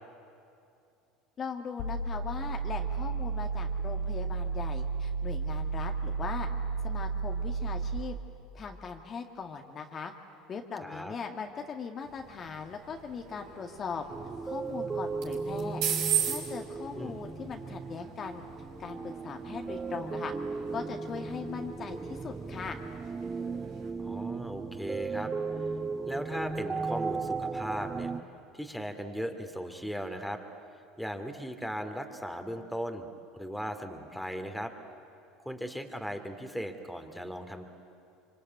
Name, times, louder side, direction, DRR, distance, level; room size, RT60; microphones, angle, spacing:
voice 1, 1.4-6.5 6.8-8.2 8.5-10.1 10.5-14.0 14.4-15.8 16.2-18.5 18.8-20.3 20.7-22.8, left 6 dB, 35° left, 3 dB, 2.0 m, -39 dB
sound 1, 1.8-8.0, right 4 dB, 65° left, 2.2 m, -32 dB
voice 2, 10.8-11.1 16.9-17.2 24.0-25.3 26.1-28.1 28.5-30.4 31.0-34.7 35.4-37.6, equal, ahead, 5 dB, 2.7 m, -37 dB
sound 2, 12.0-23.9, right 9 dB, 70° right, 5.8 m, -39 dB
sound 3, 14.1-28.2, right 4 dB, 20° right, 1.1 m, -36 dB
26.0 x 24.5 x 9.4 m, 2.6 s
hypercardioid pair, 85°, 0 cm